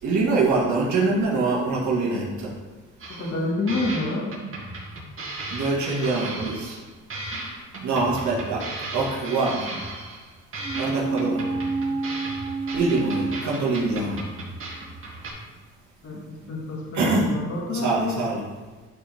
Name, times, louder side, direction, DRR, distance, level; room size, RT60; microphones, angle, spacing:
voice 1, 0.0-2.5 5.5-6.8 7.8-8.6 8.9-9.7 10.7-11.4 12.7-14.2 16.9-17.3 17.7-18.4, right 3 dB, 70° right, -5 dB, 2.0 m, -24 dB
sound 1, 3.0-3.4 3.7-6.8 7.1-10.3 10.5-15.3, right 2 dB, 45° right, 2.4 m, -36 dB
voice 2, 3.1-4.3 16.0-18.3, left 2 dB, 50° left, -3 dB, 1.8 m, -28 dB
sound 2, 10.6-14.4 14.7-14.8, right 3 dB, 25° right, 0.6 m, -29 dB
10.5 x 4.5 x 3.6 m, 1.3 s
cardioid pair, 90°, 30 cm